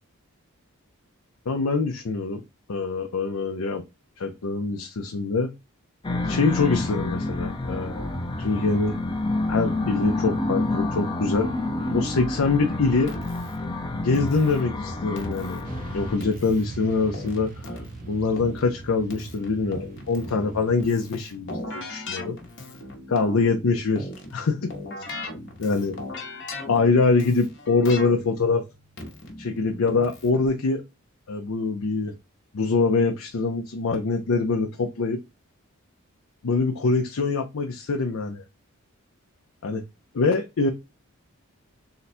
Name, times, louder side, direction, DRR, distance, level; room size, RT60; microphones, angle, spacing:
voice 1, 1.5-2.4 2.7-3.8 4.2-5.5 6.2-9.0 9.5-11.5 11.9-13.1 13.9-15.6 15.9-17.5 18.1-22.4 23.1-24.7 25.6-26.0 26.7-28.7 29.4-30.8 31.3-32.1 32.5-35.2 36.4-38.4 39.6-39.8 40.1-40.7, left 4 dB, 70° left, 0.5 m, -24 dB
sound 1, 6.0-16.2, left 2 dB, 20° left, 0.6 m, -28 dB
Keyboard (musical), 13.1-30.5, left 2 dB, 55° left, 1.1 m, -39 dB
Motorcycle / Traffic noise roadway noise, 15.6-20.9, right 3 dB, 40° right, 0.5 m, -40 dB
3.8 x 2.2 x 4.2 m
head